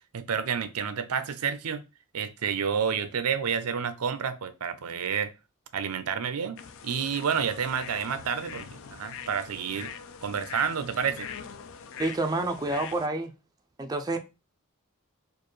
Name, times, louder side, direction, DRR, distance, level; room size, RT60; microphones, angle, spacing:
voice 1, 0.1-1.8 2.1-5.3 5.7-9.9 10.2-11.3, right 7 dB, 85° right, 0.5 m, -29 dB
sound 1, 6.6-13.1, left 7 dB, 60° left, 0.4 m, -43 dB
voice 2, 12.0-13.3 13.8-14.2, right 2 dB, 15° right, 0.4 m, -28 dB
4.4 x 2.5 x 3.1 m
head